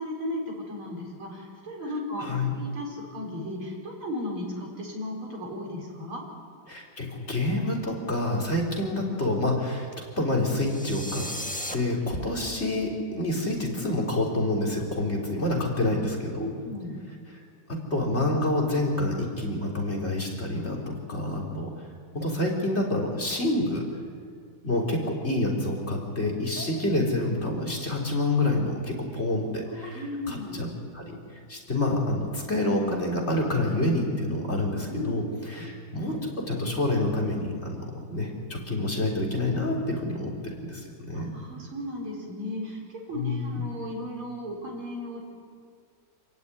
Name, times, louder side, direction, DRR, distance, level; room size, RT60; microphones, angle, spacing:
voice 1, 0.0-6.2 12.0-12.2 16.4-17.0 24.7-24.8 29.7-30.6 34.9-35.2 35.6-35.7 41.1-42.8 43.1-45.2, left 1 dB, 85° right, -1 dB, 5.9 m, -35 dB
voice 2, 2.2-2.5 6.7-11.3 11.7-16.5 17.7-21.7 22.1-23.8 24.6-30.7 30.9-31.2 31.5-40.3 40.6-41.4 43.1-43.6, left 1 dB, 30° left, 0 dB, 4.0 m, -28 dB
sound 1, 10.6-11.7, equal, 5° left, 1.2 m, -35 dB
28.0 x 15.0 x 9.8 m, 2.1 s
omnidirectional pair, 2.3 m